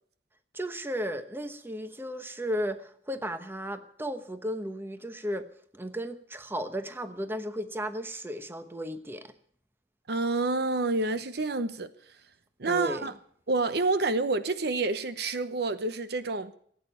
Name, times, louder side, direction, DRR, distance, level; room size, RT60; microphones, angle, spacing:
voice 1, 0.5-5.5 5.7-9.3 12.6-13.1, equal, 15° right, 1.0 m, -34 dB
voice 2, 10.1-11.9 12.6-13.1 13.5-16.5, right 3 dB, 65° right, 0.9 m, -28 dB
16.0 x 8.8 x 9.2 m
head